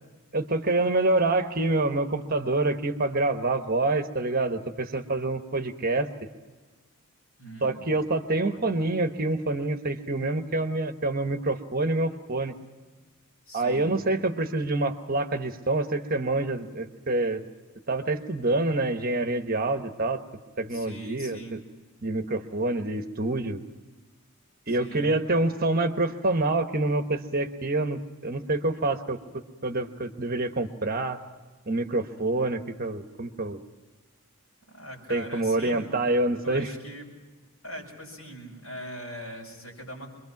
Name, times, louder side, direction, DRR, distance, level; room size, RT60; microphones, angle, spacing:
voice 1, 0.3-6.1 7.6-12.5 13.5-17.4 17.9-20.2 20.6-21.6 22.0-23.6 24.7-31.2 31.7-33.6 35.1-36.7, right 2 dB, 40° right, 7 dB, 1.2 m, -27 dB
voice 2, 7.4-7.8 8.4-8.6 13.5-13.9 20.7-21.6 24.7-25.2 34.7-35.9 36.4-37.1 37.6-40.1, equal, 70° left, -1 dB, 7.2 m, -41 dB
26.0 x 22.5 x 5.9 m, 1.3 s
head